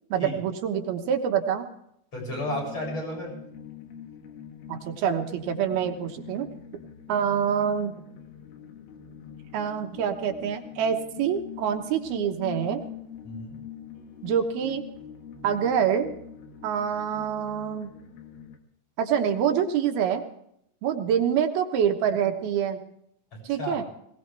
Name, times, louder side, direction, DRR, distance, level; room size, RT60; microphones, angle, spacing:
voice 1, 0.1-1.7 4.7-6.5 7.1-8.0 9.5-12.8 14.2-14.8 15.4-16.1 16.6-17.9 19.0-20.2 20.8-22.8 23.4-23.8, right 8 dB, 85° right, 4 dB, 3.2 m, -26 dB
voice 2, 2.1-3.3 13.2-13.6 23.3-23.8, left 1 dB, 30° left, -2 dB, 8.1 m, -33 dB
sound 1, 2.3-18.6, left 9 dB, 75° left, 3.3 m, -44 dB
20.5 x 18.5 x 3.4 m, 0.75 s
omnidirectional pair, 4.3 m